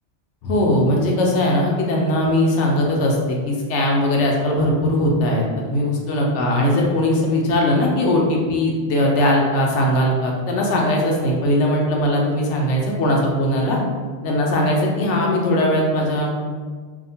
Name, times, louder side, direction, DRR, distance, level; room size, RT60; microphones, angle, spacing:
voice 1, 0.4-13.8 14.2-16.3, left 1 dB, 80° left, -1 dB, 0.9 m, -19 dB
2.8 x 2.0 x 2.6 m, 1.5 s
omnidirectional pair, 1.2 m